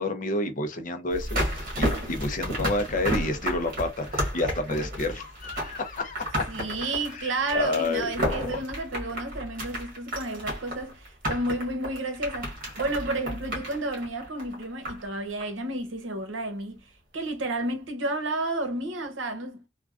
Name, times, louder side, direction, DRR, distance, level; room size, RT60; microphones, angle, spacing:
voice 1, 0.0-6.4 6.8-8.6, left 2 dB, 45° left, 0.5 m, -30 dB
sound 1, 1.1-15.1 15.4-15.5, equal, 50° right, 1.5 m, -32 dB
voice 2, 6.5-16.8 17.1-19.6, right 2 dB, 85° right, 0.8 m, -31 dB
3.5 x 2.2 x 2.4 m
head